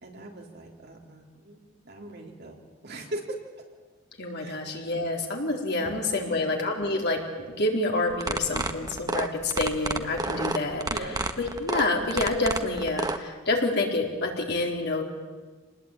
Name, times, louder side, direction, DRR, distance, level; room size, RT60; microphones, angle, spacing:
voice 1, 0.0-1.6 1.8-3.4 4.4-4.6 5.8-6.4 10.9-11.2, right 1 dB, 50° right, 1 dB, 4.1 m, -40 dB
voice 2, 4.2-7.2 7.5-10.8 11.4-15.0, left 2 dB, 50° left, 1 dB, 4.1 m, -27 dB
sound 1, 8.1-13.2, right 2 dB, 20° right, 1.3 m, -29 dB
28.0 x 20.5 x 9.2 m, 1.4 s
head